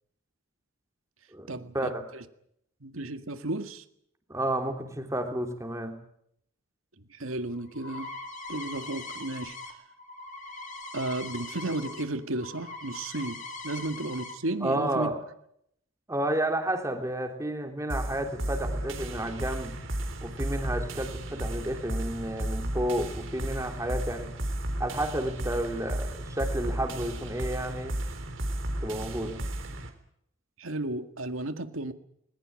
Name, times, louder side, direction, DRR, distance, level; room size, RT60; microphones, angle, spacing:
voice 1, 1.3-2.1 4.3-6.0 14.6-15.2 16.1-19.7 20.2-24.3 24.8-28.0 28.8-29.4, right 1 dB, 15° right, 4 dB, 3.3 m, -31 dB
voice 2, 2.8-3.8 7.1-8.1 8.5-9.6 10.9-15.1 30.6-31.9, right 2 dB, 85° right, 9 dB, 2.0 m, -33 dB
sound 1, 7.3-12.0 12.3-14.3, left 2 dB, 40° left, 3.2 m, -41 dB
sound 2, 17.9-29.9, right 1 dB, 65° right, 3.8 m, -33 dB
20.5 x 20.5 x 8.9 m, 0.73 s
head